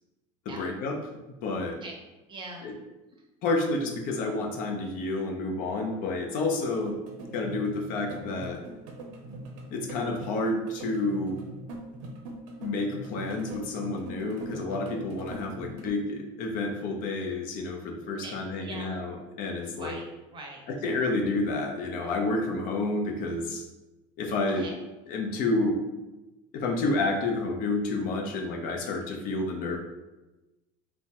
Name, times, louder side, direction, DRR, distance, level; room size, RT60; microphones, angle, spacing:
voice 1, 0.5-1.0 1.4-1.8 2.6-2.7 3.4-7.0 7.3-8.6 9.7-11.4 12.6-19.9 20.8-23.6 24.2-24.7 25.1-25.8 26.5-29.8, left 2 dB, 55° left, 3 dB, 0.6 m, -29 dB
voice 2, 2.3-2.7 18.2-19.0 19.8-20.6 24.6-24.8, right 2 dB, 30° right, 0 dB, 0.6 m, -42 dB
sound 1, 6.7-15.9, right 2 dB, 85° right, 0.6 m, -42 dB
3.3 x 2.1 x 2.8 m, 1.1 s
supercardioid pair, 125°, 17 cm